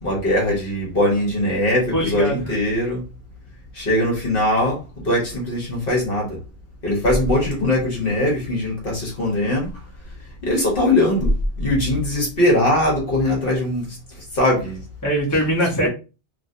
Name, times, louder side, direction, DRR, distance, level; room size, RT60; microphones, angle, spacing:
voice 1, 0.0-3.0 3.7-6.4 6.8-9.8 10.4-14.8, left 1 dB, 50° left, 1.4 m, -21 dB
voice 2, 1.9-2.5 15.0-15.9, equal, 15° left, 1.1 m, -21 dB
3.1 x 2.9 x 2.7 m
omnidirectional pair, 1.2 m